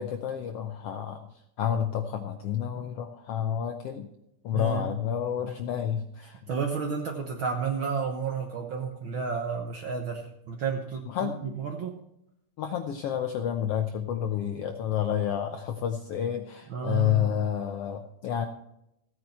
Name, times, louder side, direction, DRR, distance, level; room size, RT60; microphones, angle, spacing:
voice 1, 0.0-4.1 4.4-6.4 11.1-11.6 12.6-18.5, left 9 dB, 75° left, 6 dB, 1.4 m, -30 dB
voice 2, 4.5-4.8 6.5-11.3 11.6-12.0 16.7-17.4, right 5 dB, 60° right, 3 dB, 1.3 m, -31 dB
15.5 x 9.3 x 4.3 m, 0.81 s
omnidirectional pair, 3.5 m